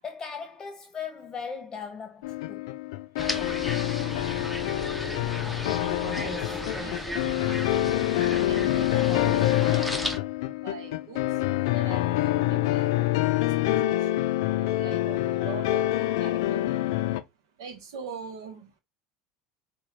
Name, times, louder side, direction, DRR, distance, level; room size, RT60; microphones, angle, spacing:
voice 1, 0.0-2.7, left 6 dB, 25° left, 0.8 m, -38 dB
sound 1, 2.2-17.2, left 15 dB, 75° left, 0.4 m, -26 dB
sound 2, 3.2-10.2, equal, ahead, 0.6 m, -35 dB
voice 2, 6.8-7.4 7.8-7.9 8.3-10.1 10.6-11.2 11.7-14.3 14.6-16.6 17.6-18.7, right 6 dB, 85° right, 0.9 m, -43 dB
4.8 x 2.3 x 3.1 m
supercardioid pair, 105°, 2 cm